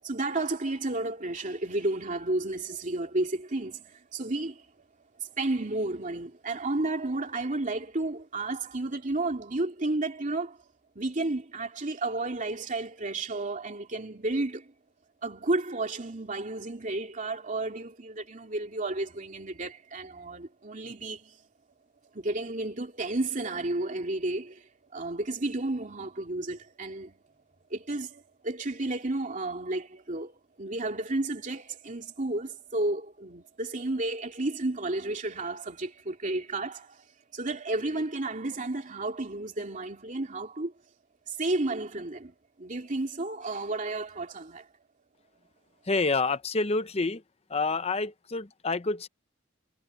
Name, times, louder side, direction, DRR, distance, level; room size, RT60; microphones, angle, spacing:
voice 1, 0.0-4.7 5.2-10.6 10.9-14.7 15.2-21.4 22.1-27.2 27.7-37.0 37.3-40.8 41.3-44.7, right 2 dB, 40° right, 2.8 m, -32 dB
voice 2, 45.9-47.2 47.5-49.1, left 3 dB, 30° left, 0.8 m, -28 dB
head